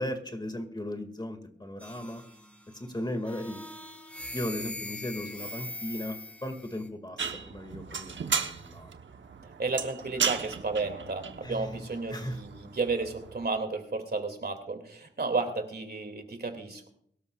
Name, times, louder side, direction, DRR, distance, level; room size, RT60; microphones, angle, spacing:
voice 1, 0.0-2.2 2.7-3.6 4.3-8.9 11.4-12.4, left 1 dB, 20° left, 7 dB, 2.0 m, -37 dB
sound 1, 1.8-2.7 3.2-6.9, left 1 dB, 5° left, 3.6 m, -42 dB
sound 2, 7.2-13.5, right 6 dB, 85° right, 1.0 m, -35 dB
voice 2, 9.6-16.9, right 3 dB, 60° right, 5 dB, 2.4 m, -32 dB
23.0 x 12.5 x 2.4 m, 0.66 s
cardioid pair, 60°, 19 cm